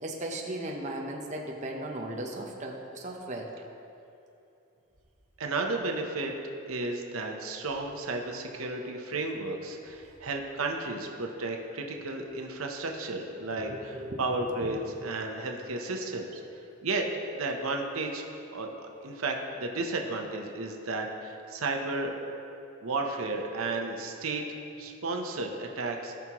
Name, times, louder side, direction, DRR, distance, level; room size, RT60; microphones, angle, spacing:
voice 1, 0.0-3.5 13.6-14.2, right 1 dB, 35° right, 0 dB, 0.8 m, -36 dB
voice 2, 5.4-6.3 6.7-16.4 16.8-17.1 17.3-18.2 18.5-18.7 19.0-22.1 22.8-24.4 24.8-26.1, right 2 dB, 80° right, 2 dB, 0.9 m, -33 dB
17.5 x 6.1 x 3.0 m, 2.8 s
head